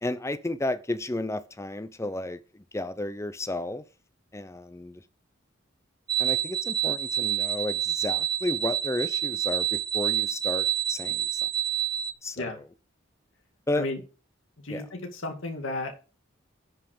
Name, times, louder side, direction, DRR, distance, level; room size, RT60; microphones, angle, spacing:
voice 1, 0.0-3.8 4.3-5.0 6.2-11.5 12.2-12.5 13.7-13.9 14.7-14.8, left 2 dB, 15° left, 0.7 m, -32 dB
sound 1, 6.1-12.1, right 11 dB, 25° right, 0.7 m, -28 dB
voice 2, 14.6-16.0, left 2 dB, 80° left, 2.4 m, -33 dB
10.0 x 5.6 x 6.1 m
head